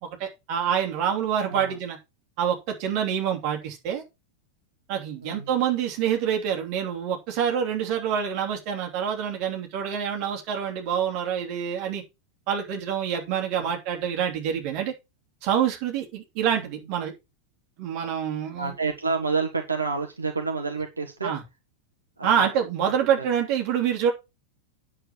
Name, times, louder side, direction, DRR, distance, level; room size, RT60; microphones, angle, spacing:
voice 1, 0.0-2.0 2.4-4.0 4.9-12.0 12.5-14.9 15.4-17.1 17.8-18.7 21.2-21.4 22.2-24.1, right 8 dB, 45° right, 3.0 m, -26 dB
voice 2, 5.2-5.5 18.6-21.4 22.2-22.5 23.2-23.3, right 4 dB, 80° right, 1.4 m, -29 dB
9.0 x 7.4 x 4.5 m
figure-of-eight pair, 90°, 0 cm